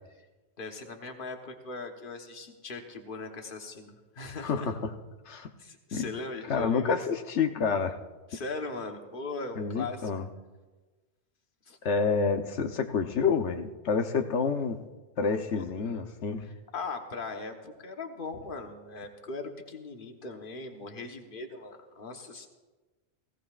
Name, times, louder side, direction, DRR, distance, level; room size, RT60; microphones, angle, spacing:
voice 1, 0.6-4.7 5.3-7.0 8.3-10.1 11.7-11.8 15.5-16.0 16.4-22.5, left 3 dB, 50° left, 4 dB, 1.4 m, -39 dB
voice 2, 4.4-4.9 5.3-5.5 5.9-6.1 6.5-8.0 9.6-10.2 11.8-14.8 15.2-16.4, left 5 dB, 80° left, 6 dB, 1.2 m, -28 dB
18.5 x 16.5 x 2.4 m, 1.2 s
omnidirectional pair, 1.1 m